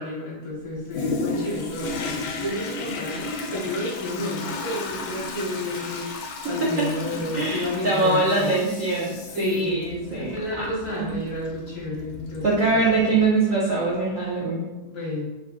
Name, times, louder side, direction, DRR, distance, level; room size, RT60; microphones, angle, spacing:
voice 1, 0.0-8.5 9.3-12.8 13.1-13.2 14.8-15.3, left 1 dB, 60° left, -6 dB, 1.5 m, -31 dB
Toilet flush, 0.9-13.3 13.9-14.0, left 3 dB, 85° left, 1.4 m, -34 dB
voice 2, 6.4-6.9 7.3-10.7 11.0-11.1 12.4-14.7, right 3 dB, 75° right, -5 dB, 0.7 m, -23 dB
3.8 x 2.7 x 3.6 m, 1.1 s
omnidirectional pair, 2.2 m